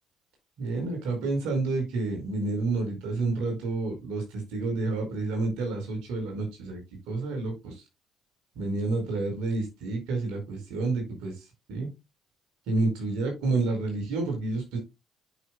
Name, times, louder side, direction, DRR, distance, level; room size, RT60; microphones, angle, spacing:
voice 1, 0.6-6.8 7.1-7.8 8.5-11.3 11.7-11.9 12.7-14.8, right 3 dB, 75° right, 4.7 m, -29 dB
11.0 x 6.5 x 2.2 m
hypercardioid pair, 55°, 0 cm